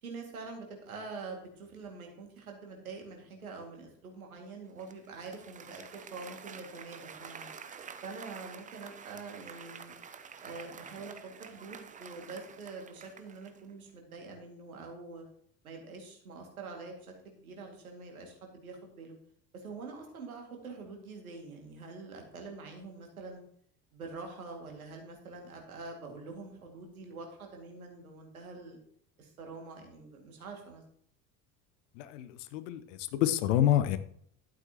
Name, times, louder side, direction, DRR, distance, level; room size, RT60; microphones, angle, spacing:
voice 1, 0.0-7.5 8.0-9.9 10.4-15.3 15.6-19.2 19.5-23.4 23.9-28.8 29.2-30.8, right 4 dB, 75° right, 2 dB, 2.2 m, -45 dB
Applause, 4.8-13.7, right 6 dB, 20° right, 0.6 m, -49 dB
voice 2, 31.9-34.0, left 12 dB, 55° left, 13 dB, 0.9 m, -28 dB
11.5 x 9.0 x 2.9 m, 0.66 s
figure-of-eight pair, 60°, 43 cm